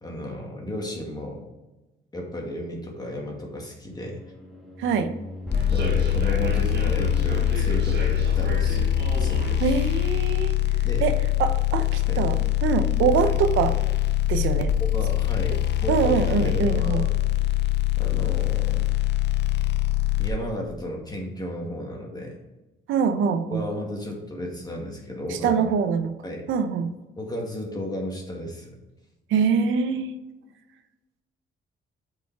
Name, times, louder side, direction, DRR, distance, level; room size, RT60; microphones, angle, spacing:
voice 1, 0.0-1.4 2.1-4.2 5.7-9.6 10.8-11.0 12.1-12.2 14.8-17.1 18.0-18.9 20.2-22.4 23.5-25.6 26.2-26.5 27.2-28.8, left 1 dB, 20° left, 0 dB, 2.1 m, -34 dB
sound 1, 3.9-9.4, left 1 dB, ahead, 2.3 m, -31 dB
voice 2, 4.8-5.1 9.6-10.5 11.0-13.8 14.3-14.7 15.5-15.6 15.9-17.0 22.9-23.6 25.3-26.1 26.5-26.9 29.3-30.1, right 6 dB, 85° right, 9 dB, 0.8 m, -24 dB
sound 2, 5.5-20.3, left 15 dB, 60° left, 0.9 m, -24 dB
Human voice / Subway metro underground, 5.5-11.1, right 4 dB, 55° right, 1.5 m, -37 dB
8.1 x 5.1 x 4.7 m, 1.1 s
cardioid pair, 90°, 20 cm